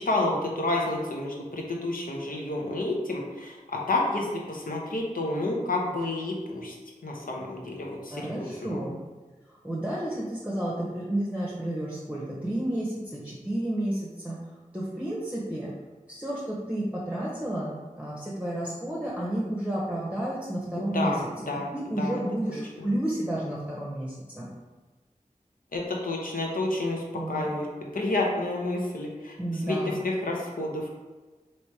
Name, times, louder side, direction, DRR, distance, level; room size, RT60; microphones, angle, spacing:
voice 1, 0.0-6.8 7.0-8.8 20.8-21.2 21.5-22.2 22.8-22.9 25.7-27.7 27.9-30.9, left 2 dB, 85° left, -1 dB, 0.8 m, -30 dB
voice 2, 8.1-8.9 9.6-14.4 14.7-15.7 16.1-21.1 21.7-24.5 27.1-27.5 29.4-29.9, right 1 dB, 10° right, -6 dB, 0.8 m, -31 dB
3.0 x 3.0 x 4.6 m, 1.3 s
wide cardioid pair, 60°, 14 cm